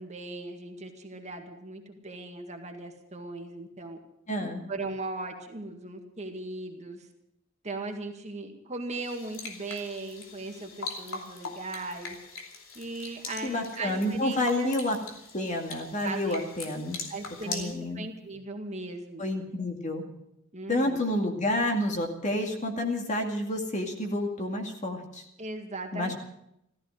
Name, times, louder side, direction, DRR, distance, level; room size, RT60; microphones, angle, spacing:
voice 1, 0.0-4.0 4.7-7.1 7.6-12.2 12.8-14.8 16.0-16.5 17.1-19.2 20.5-21.0 25.4-26.1, right 2 dB, 35° right, 3 dB, 1.9 m, -38 dB
voice 2, 4.3-4.7 13.4-15.0 15.3-17.0 17.5-18.1 19.2-20.1 20.7-25.2 25.9-26.1, left 1 dB, 35° left, 3 dB, 2.2 m, -29 dB
sound 1, 9.0-17.7, left 4 dB, 75° left, 2.8 m, -41 dB
15.0 x 14.5 x 6.5 m, 0.79 s
head